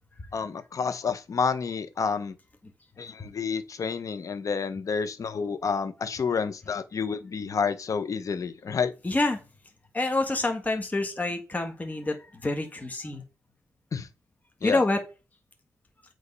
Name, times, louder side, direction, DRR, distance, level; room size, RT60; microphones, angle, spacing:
voice 1, 0.3-2.3 3.0-8.9 13.9-14.1 14.6-14.8, left 5 dB, 55° left, 1.0 m, -29 dB
voice 2, 9.0-9.4 9.9-13.2 14.6-15.0, left 2 dB, 25° left, 1.6 m, -27 dB
8.3 x 3.7 x 5.4 m
cardioid pair, 75°, 7 cm